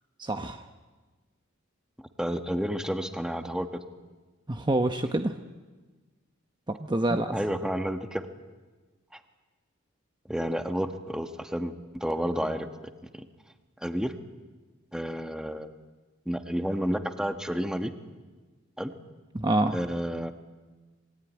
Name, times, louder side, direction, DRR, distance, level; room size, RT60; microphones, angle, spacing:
voice 1, 0.2-0.6 4.5-5.3 6.7-7.3 19.3-19.8, right 1 dB, 20° right, 6 dB, 0.9 m, -26 dB
voice 2, 2.2-3.8 7.1-8.3 9.1-9.2 10.3-12.7 13.1-13.3 13.8-14.2 14.9-15.7 16.2-17.9 18.8-18.9 19.7-20.3, equal, 5° right, 7 dB, 1.5 m, -30 dB
27.0 x 22.0 x 9.6 m, 1.3 s
head